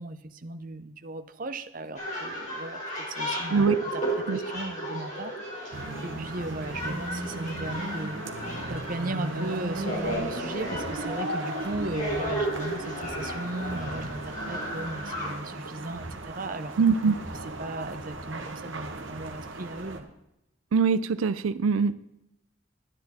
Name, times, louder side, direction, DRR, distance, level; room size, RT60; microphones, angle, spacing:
voice 1, 0.0-16.7 17.3-20.1, right 2 dB, 40° right, 10 dB, 0.7 m, -37 dB
sound 1, 1.9-15.3, right 1 dB, 35° left, 4.4 m, -34 dB
sound 2, 5.7-20.0, right 2 dB, 70° right, 1.4 m, -37 dB
voice 2, 16.8-17.1 20.7-22.0, right 5 dB, 90° right, 15 dB, 0.4 m, -23 dB
12.0 x 10.5 x 4.2 m, 0.87 s
head